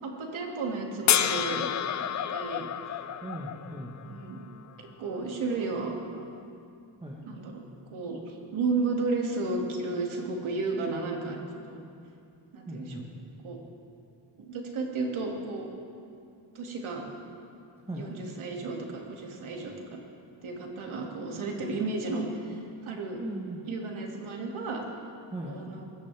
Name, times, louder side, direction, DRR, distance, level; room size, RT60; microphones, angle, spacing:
voice 1, 0.0-1.7 2.1-2.7 4.0-4.4 4.8-6.0 7.2-7.6 7.9-11.4 11.7-11.8 12.5-13.0 13.4-13.6 14.4-15.7 16.5-17.0 17.9-20.0 20.4-23.2 23.7-24.8 25.4-25.9, right 3 dB, 85° right, 0 dB, 2.4 m, -33 dB
sound 1, 1.1-4.3 6.4-6.5, left 9 dB, 40° left, 0.4 m, -29 dB
voice 2, 3.2-3.9 7.0-7.2 12.7-13.0 17.9-18.0 23.2-23.6 25.3-25.6, right 1 dB, 10° right, -3 dB, 1.3 m, -38 dB
21.5 x 16.5 x 3.5 m, 2.6 s
wide cardioid pair, 140°, 47 cm